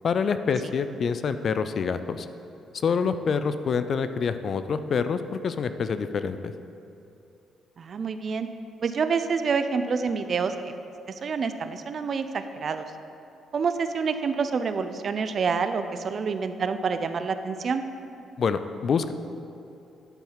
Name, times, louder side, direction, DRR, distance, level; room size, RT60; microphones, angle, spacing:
voice 1, 0.0-2.3 2.8-6.5 18.4-19.1, left 6 dB, 55° left, 11 dB, 0.4 m, -26 dB
voice 2, 7.8-8.5 8.8-10.7 11.1-12.9 13.5-17.8, right 5 dB, 50° right, 10 dB, 0.5 m, -27 dB
10.5 x 4.5 x 5.7 m, 2.7 s
cardioid pair, 90°, 0 cm